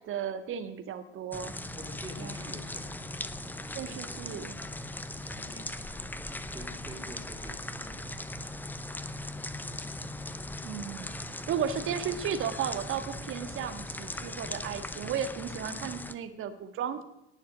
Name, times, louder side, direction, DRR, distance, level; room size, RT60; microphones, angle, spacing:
voice 1, 0.0-1.5 2.2-2.3 3.7-4.5 10.6-17.0, right 8 dB, 35° right, 8 dB, 1.7 m, -34 dB
sound 1, 1.3-16.1, left 1 dB, 5° left, 0.7 m, -39 dB
voice 2, 1.8-3.2 3.6-6.0 6.5-8.8, right 1 dB, 15° right, 3 dB, 3.0 m, -49 dB
18.5 x 7.0 x 6.2 m, 0.88 s
hypercardioid pair, 85°, 34 cm